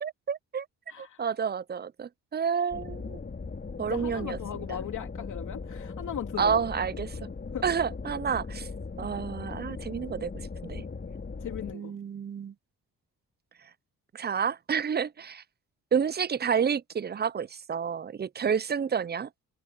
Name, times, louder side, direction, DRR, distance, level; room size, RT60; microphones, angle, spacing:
voice 1, 0.0-0.7 1.0-3.2 3.8-4.4 4.7-4.8 6.4-7.2 7.6-8.7 9.0-10.3 10.6-10.8 11.7-12.5 14.1-15.4 15.9-19.3, right 7 dB, 30° right, 0.6 m, -29 dB
voice 2, 0.9-1.3 3.8-6.6 7.5-7.6 11.4-12.0, left 9 dB, 60° left, 3.0 m, -38 dB
sound 1, 2.7-11.7, left 4 dB, 30° left, 5.1 m, -39 dB
cardioid pair, 80°, 34 cm